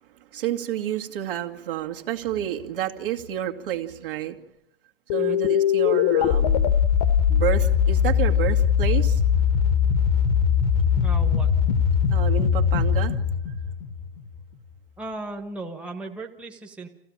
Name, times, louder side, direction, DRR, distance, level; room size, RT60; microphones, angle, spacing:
voice 1, 0.3-4.4 5.1-6.8 7.3-9.2 12.1-13.2, right 11 dB, 55° right, 4 dB, 2.3 m, -29 dB
sound 1, 5.1-14.4, left 8 dB, 35° left, 1.1 m, -21 dB
voice 2, 11.0-11.5 15.0-16.9, right 2 dB, 5° right, 1 dB, 1.4 m, -36 dB
27.5 x 15.5 x 8.7 m, 0.87 s
hypercardioid pair, 140°, 32 cm